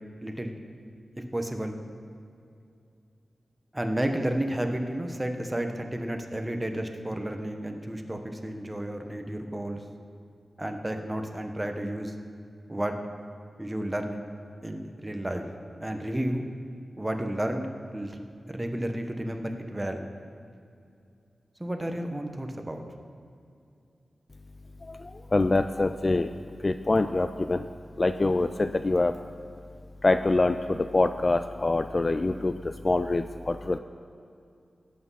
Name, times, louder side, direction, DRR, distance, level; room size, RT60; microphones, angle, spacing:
voice 1, 0.2-0.6 1.3-1.8 3.7-9.8 10.6-12.1 12.7-13.0 13.6-14.2 14.6-15.4 15.8-16.4 17.0-17.7 17.9-20.0 21.6-22.8, right 1 dB, 15° right, 4 dB, 1.1 m, -32 dB
voice 2, 24.8-26.3 26.6-27.7 28.0-29.2 30.0-33.8, left 2 dB, 30° left, 10 dB, 0.3 m, -25 dB
17.0 x 8.5 x 5.7 m, 2.5 s
wide cardioid pair, 105°, 0 cm